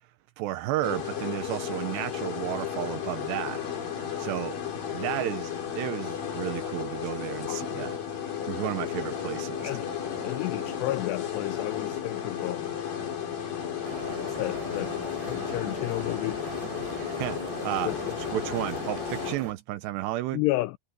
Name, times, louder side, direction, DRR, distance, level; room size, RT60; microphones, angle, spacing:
voice 1, 0.4-3.6 4.2-4.6 4.9-8.0 8.5-9.7 17.0-17.9 18.2-20.4, right 15 dB, 80° right, 2.6 m, -32 dB
sound 1, 0.6-2.6 5.6-5.7 5.9-19.5, left 5 dB, 65° left, 6.4 m, -48 dB
sound 2, 0.8-19.4, left 8 dB, 50° left, 5.5 m, -34 dB
voice 2, 10.2-12.8 14.2-15.0 15.3-16.4 17.8-18.2 20.3-20.8, left 19 dB, 90° left, 2.4 m, -31 dB
sagrada familia cathedral all back, 13.8-19.5, right 5 dB, 65° right, 4.7 m, -41 dB
omnidirectional pair, 5.4 m